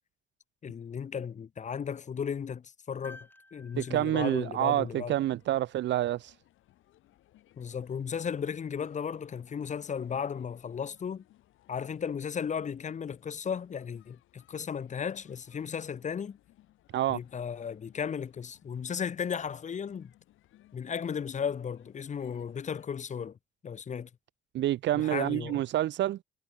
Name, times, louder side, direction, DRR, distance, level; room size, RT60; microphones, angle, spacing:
voice 1, 0.6-5.2 7.6-11.2 11.7-16.4 17.1-20.1 20.7-23.4 23.6-24.1 24.9-25.6, left 7 dB, 35° left, 0.7 m, -35 dB
sound 1, 3.0-5.4 7.4-7.5, left 1 dB, 10° left, 6.6 m, -54 dB
voice 2, 3.8-6.3 16.9-17.2 24.5-26.2, right 13 dB, 65° right, 0.5 m, -28 dB
sound 2, 4.2-22.9, left 15 dB, 85° left, 5.2 m, -63 dB
cardioid pair, 90°, 20 cm